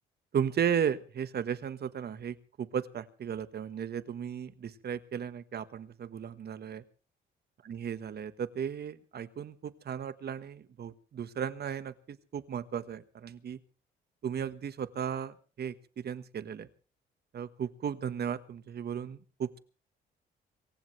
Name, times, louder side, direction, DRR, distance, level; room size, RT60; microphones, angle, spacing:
voice 1, 0.3-6.8 7.6-13.6 14.2-16.7 17.3-19.6, right 8 dB, 55° right, 13 dB, 1.4 m, -35 dB
25.5 x 15.5 x 3.3 m, 0.38 s
cardioid pair, 90°, 20 cm